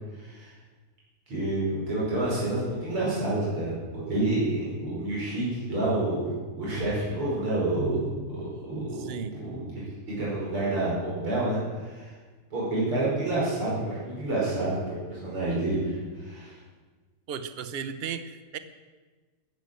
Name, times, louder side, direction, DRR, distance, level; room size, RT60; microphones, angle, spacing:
voice 1, 0.1-0.5 1.3-12.2 12.5-16.6, right 2 dB, 75° right, -6 dB, 6.3 m, -29 dB
voice 2, 9.0-9.4 17.3-18.6, right 7 dB, 60° right, 11 dB, 0.6 m, -35 dB
15.5 x 11.0 x 7.8 m, 1.3 s
omnidirectional pair, 2.4 m